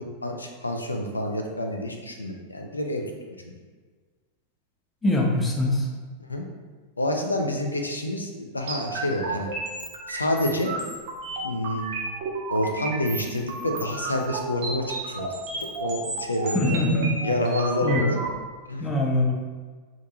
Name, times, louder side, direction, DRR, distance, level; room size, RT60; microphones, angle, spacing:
voice 1, 0.0-3.0 6.3-6.4 7.0-9.5 10.1-10.7 11.4-11.9 12.5-16.8 17.2-18.2 18.7-18.9, left 1 dB, 80° left, 3 dB, 0.3 m, -28 dB
voice 2, 5.0-5.9 16.5-17.3 17.8-18.0 18.8-19.4, left 1 dB, 15° left, -1 dB, 0.5 m, -23 dB
sound 1, 8.7-18.3, right 3 dB, 50° right, 0.4 m, -33 dB
2.5 x 2.2 x 2.7 m, 1.5 s
figure-of-eight pair, 90°, 0 cm